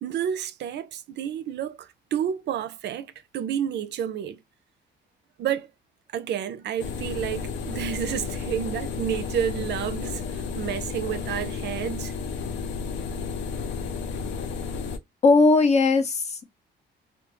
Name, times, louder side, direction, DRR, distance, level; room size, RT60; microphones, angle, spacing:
voice 1, 0.0-4.4 5.4-5.7 6.1-12.1, right 9 dB, 65° right, 0.4 m, -30 dB
sound 1, 6.8-15.0, left 5 dB, 80° left, 0.5 m, -32 dB
voice 2, 15.2-16.4, left 3 dB, 35° left, 0.6 m, -18 dB
2.5 x 2.2 x 2.9 m
cardioid pair, 140°, 19 cm